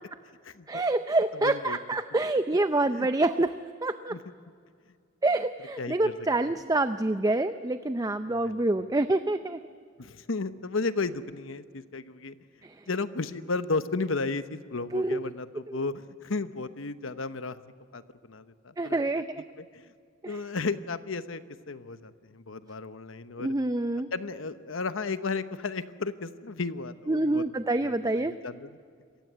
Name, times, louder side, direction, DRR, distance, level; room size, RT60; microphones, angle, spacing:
voice 1, 0.7-4.2 5.2-9.6 12.6-12.7 14.9-15.2 15.7-15.8 18.8-19.4 20.2-20.4 23.4-24.1 27.1-28.4, right 2 dB, 20° right, 10 dB, 0.5 m, -27 dB
voice 2, 1.4-1.8 2.9-3.1 4.1-4.2 5.8-6.2 6.4-6.5 8.3-8.6 10.0-12.4 12.9-17.6 17.9-19.2 19.6-19.9 20.2-23.5 24.1-27.4 27.8-28.8, left 3 dB, 75° left, 12 dB, 1.0 m, -34 dB
27.0 x 15.5 x 9.5 m, 2.2 s
head